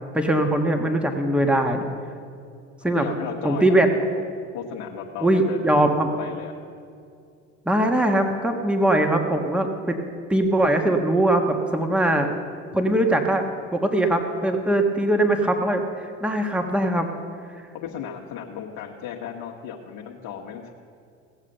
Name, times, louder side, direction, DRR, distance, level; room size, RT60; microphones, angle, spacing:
voice 1, 0.1-1.9 2.8-3.1 3.4-3.9 5.2-6.1 7.6-10.0 10.3-12.3 12.7-13.4 13.7-17.1, right 1 dB, 5° right, 4 dB, 1.4 m, -21 dB
voice 2, 2.8-4.1 4.5-5.8 6.2-6.5 17.7-20.7, left 8 dB, 60° left, -1 dB, 1.5 m, -35 dB
17.5 x 7.4 x 6.7 m, 2.4 s
hypercardioid pair, 70°, 38 cm